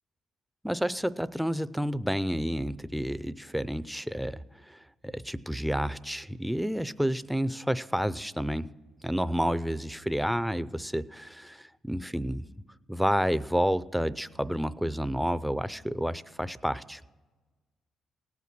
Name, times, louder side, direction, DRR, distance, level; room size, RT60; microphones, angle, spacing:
voice 1, 0.6-4.4 4.7-8.7 9.0-12.4 12.9-17.0, equal, ahead, 15 dB, 0.5 m, -30 dB
17.5 x 8.4 x 6.0 m, 1.2 s
cardioid pair, 90°, 0 cm